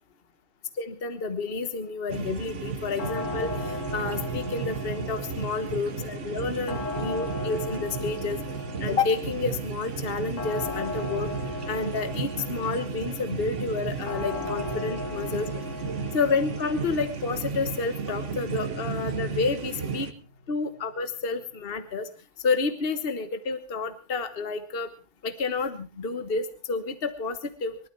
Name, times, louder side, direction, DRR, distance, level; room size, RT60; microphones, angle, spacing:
voice 1, 0.8-8.4 8.8-11.3 11.7-15.5 16.1-20.1 20.5-22.1 22.4-24.9 25.2-27.8, left 4 dB, 50° left, 10 dB, 1.4 m, -30 dB
sound 1, 2.1-20.1, right 5 dB, 70° right, 1.6 m, -34 dB
sound 2, 3.0-21.9, left 2 dB, 85° left, 1.9 m, -38 dB
23.5 x 12.5 x 4.5 m, 0.36 s
omnidirectional pair, 1.3 m